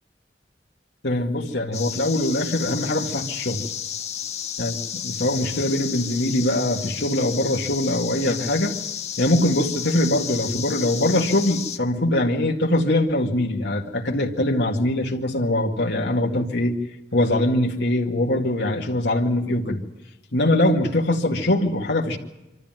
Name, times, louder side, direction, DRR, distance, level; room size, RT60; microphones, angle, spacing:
voice 1, 1.0-3.6 4.6-8.7 9.2-16.7 17.1-19.8 20.3-22.2, left 1 dB, 75° left, -1 dB, 2.1 m, -22 dB
sound 1, 1.7-11.8, left 9 dB, 40° left, 1.2 m, -32 dB
25.0 x 13.5 x 9.1 m, 1.0 s
head